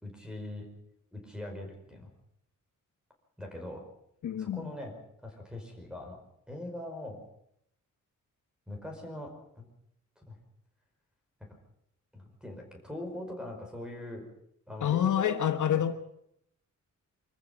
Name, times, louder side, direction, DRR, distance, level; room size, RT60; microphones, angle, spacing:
voice 1, 0.0-0.7 1.1-2.1 3.4-3.8 4.4-4.9 5.2-6.2 6.5-7.2 8.7-9.7 10.2-10.4 12.1-14.3 14.7-15.4 15.7-15.8, left 1 dB, 5° right, 3 dB, 5.0 m, -41 dB
voice 2, 4.2-4.7 14.8-15.9, left 10 dB, 70° left, 9 dB, 1.2 m, -27 dB
25.5 x 14.5 x 7.3 m, 0.76 s
wide cardioid pair, 165°, 31 cm